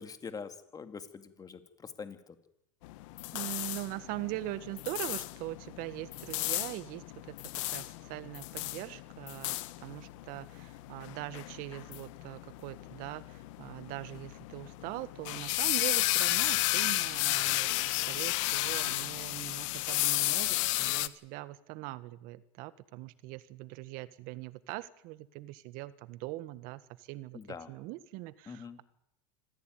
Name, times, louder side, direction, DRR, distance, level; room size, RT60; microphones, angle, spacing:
voice 1, 0.0-2.4 27.3-27.7 28.5-28.8, left 5 dB, 20° left, 9 dB, 2.4 m, -44 dB
sound 1, 2.8-21.1, left 19 dB, 70° left, 1.2 m, -33 dB
voice 2, 3.3-28.8, right 18 dB, 60° right, 15 dB, 1.6 m, -42 dB
26.0 x 15.5 x 9.5 m, 0.79 s
supercardioid pair, 115°, 17 cm